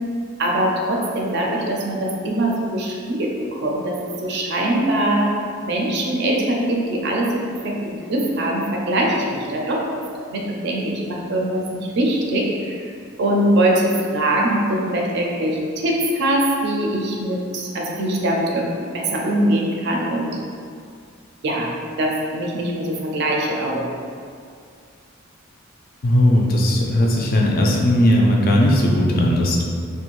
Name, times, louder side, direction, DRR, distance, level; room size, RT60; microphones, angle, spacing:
voice 1, 0.4-5.3 5.6-12.9 13.2-20.4 21.4-21.7 22.0-23.9, right 1 dB, 55° right, -1 dB, 0.4 m, -22 dB
voice 2, 26.0-29.6, left 1 dB, 45° left, -1 dB, 0.4 m, -17 dB
2.5 x 2.2 x 3.0 m, 2.2 s
head